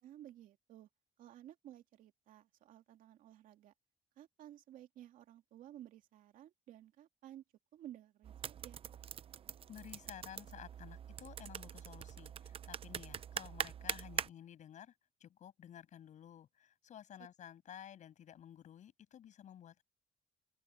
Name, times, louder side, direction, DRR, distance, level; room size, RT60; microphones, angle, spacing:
voice 1, 0.0-0.9 1.2-3.7 4.2-7.4 7.7-8.8, right 12 dB, 85° right, 2.5 m, -55 dB
sound 1, 8.2-14.3, right 8 dB, 45° right, 0.6 m, -44 dB
voice 2, 9.7-14.9 15.2-19.8, left 10 dB, 65° left, 7.8 m, -53 dB
open air
cardioid pair, 115°, 14 cm